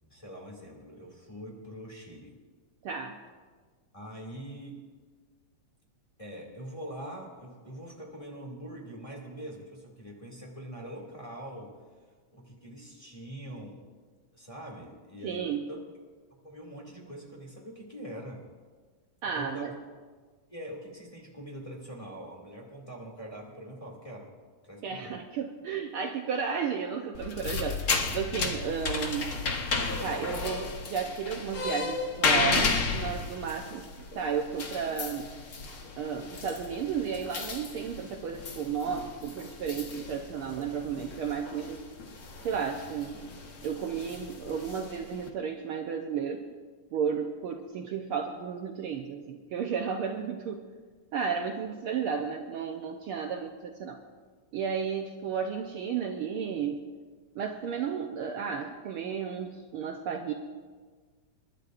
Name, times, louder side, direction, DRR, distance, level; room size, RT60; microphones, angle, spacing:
voice 1, 0.0-2.4 3.9-4.8 6.2-11.8 12.3-13.8 14.3-15.8 16.4-18.4 19.3-19.8 20.5-24.3 24.6-25.2, right 1 dB, 10° left, -2 dB, 1.9 m, -43 dB
voice 2, 2.8-3.2 15.2-15.6 19.2-19.7 24.8-29.3 30.0-33.9 34.1-35.3 36.0-41.8 42.4-43.2 43.6-46.4 46.9-50.6 51.1-54.0 54.5-56.8 57.3-60.3, right 7 dB, 90° right, 3 dB, 1.2 m, -33 dB
sound 1, 27.1-45.3, left 4 dB, 90° left, 0.8 m, -34 dB
29.0 x 12.0 x 2.5 m, 1.5 s
omnidirectional pair, 3.4 m